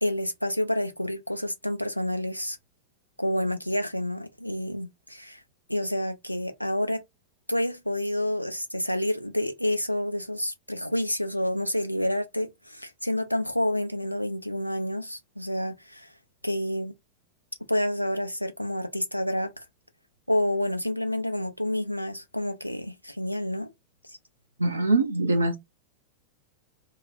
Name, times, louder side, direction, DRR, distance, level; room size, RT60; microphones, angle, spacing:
voice 1, 0.0-2.6 3.2-5.4 5.7-7.0 7.5-16.1 16.4-16.9 17.7-19.5 20.3-23.7, left 1 dB, 90° left, 0.4 m, -29 dB
voice 2, 24.6-25.6, right 2 dB, 80° right, 0.6 m, -23 dB
2.3 x 2.0 x 3.1 m
figure-of-eight pair, 90°, 0 cm